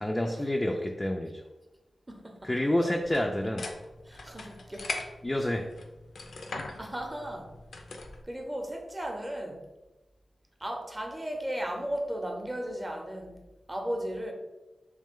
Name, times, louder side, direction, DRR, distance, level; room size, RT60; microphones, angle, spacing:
voice 1, 0.0-1.3 2.4-3.7 5.2-5.7, left 1 dB, 20° left, 1 dB, 0.3 m, -28 dB
voice 2, 2.1-2.5 2.8-2.9 4.1-4.9 6.8-7.5 8.2-9.6 10.6-13.4 13.7-14.3, right 1 dB, 20° right, 3 dB, 0.7 m, -35 dB
sound 1, 3.0-8.2, left 2 dB, 80° left, 0.5 m, -41 dB
3.2 x 3.2 x 3.6 m, 1.0 s
wide cardioid pair, 95°, 0 cm